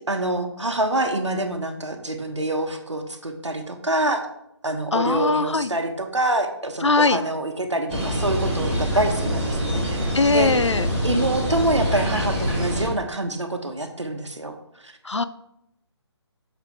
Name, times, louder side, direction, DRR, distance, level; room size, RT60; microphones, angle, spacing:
voice 1, 0.1-4.2 4.6-10.5 11.0-14.5 14.8-14.9, right 1 dB, 80° right, 5 dB, 1.4 m, -26 dB
voice 2, 4.9-5.7 6.8-7.2 10.1-10.9 15.0-15.2, left 3 dB, 80° left, 14 dB, 0.6 m, -20 dB
sound 1, 7.9-12.9, equal, 15° right, 2.2 m, -25 dB
8.8 x 6.5 x 3.7 m, 0.79 s
figure-of-eight pair, 150°, 15 cm